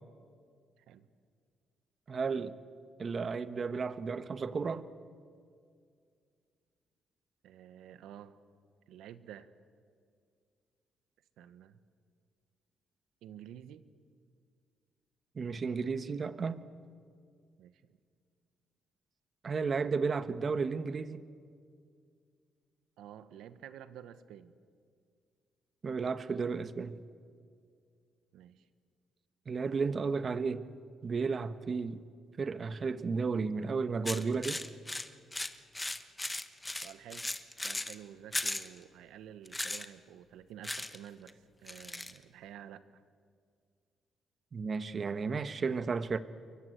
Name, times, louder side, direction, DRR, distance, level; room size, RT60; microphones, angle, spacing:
voice 1, 0.8-1.1 7.4-8.4 8.9-9.5 11.4-11.8 13.2-13.9 17.6-17.7 23.0-24.5 28.3-28.6 36.8-37.3 37.6-42.8, right 10 dB, 85° right, 12 dB, 1.3 m, -50 dB
voice 2, 2.1-2.5 3.0-4.8 15.3-16.6 19.4-21.3 25.8-27.0 29.5-30.6 31.0-32.0 32.4-34.6 44.5-46.2, right 5 dB, 40° right, 12 dB, 1.3 m, -33 dB
sound 1, 34.1-38.0 38.3-38.7 39.5-39.9 40.6-41.0 41.3-41.4 41.7-42.2, left 2 dB, 15° left, 1.3 m, -37 dB
28.5 x 23.5 x 8.0 m, 2.2 s
cardioid pair, 90°, 0 cm